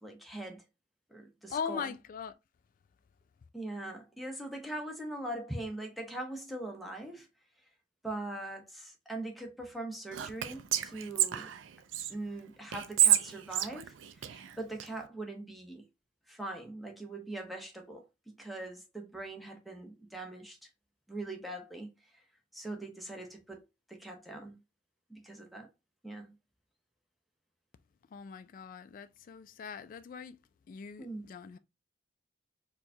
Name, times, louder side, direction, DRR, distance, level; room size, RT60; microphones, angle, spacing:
voice 1, 0.0-0.6 1.1-1.9 3.5-7.3 8.0-11.5 12.1-15.8 16.3-20.6 21.1-21.9 22.1-22.2 22.5-23.6 23.9-24.6 25.1-25.7 26.0-26.3 31.0-31.3, right 2 dB, ahead, 0.7 m, -41 dB
voice 2, 1.5-2.3 28.1-30.4 30.7-31.6, left 6 dB, 45° left, 0.3 m, -40 dB
Whispering, 10.1-12.1 12.7-14.9, right 11 dB, 75° right, 0.4 m, -29 dB
4.5 x 2.3 x 2.6 m
head